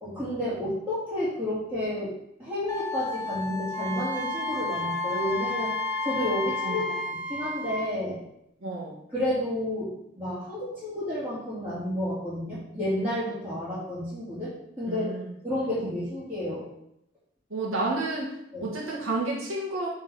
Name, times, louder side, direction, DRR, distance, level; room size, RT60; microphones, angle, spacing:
voice 1, 0.0-2.1 2.4-5.7 6.0-6.8 7.1-8.2 9.1-14.5 14.8-15.1 15.4-16.7 18.5-18.7, left 1 dB, 10° right, -13 dB, 2.4 m, -31 dB
Wind instrument woodwind instrument, 2.7-7.1, left 4 dB, 15° left, 0.4 m, -35 dB
Wind instrument woodwind instrument 2, 3.7-7.8, left 1 dB, 65° right, 1.4 m, -32 dB
voice 2, 8.6-9.0 14.9-15.3 17.5-18.3 18.6-19.9, right 2 dB, 85° right, -3 dB, 1.7 m, -30 dB
9.1 x 3.9 x 4.3 m, 0.77 s
head